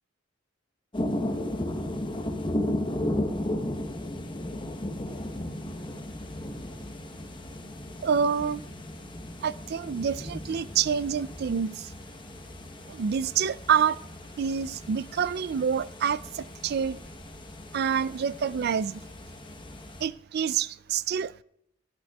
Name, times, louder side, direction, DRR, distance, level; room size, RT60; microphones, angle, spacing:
sound 1, 0.9-20.1, left 1 dB, 25° left, 0.9 m, -35 dB
voice 1, 8.0-8.6 9.4-11.9 12.9-14.0 14.4-17.0 17.7-19.0 20.0-21.4, right 7 dB, 55° right, 0.3 m, -27 dB
15.0 x 11.5 x 2.3 m
head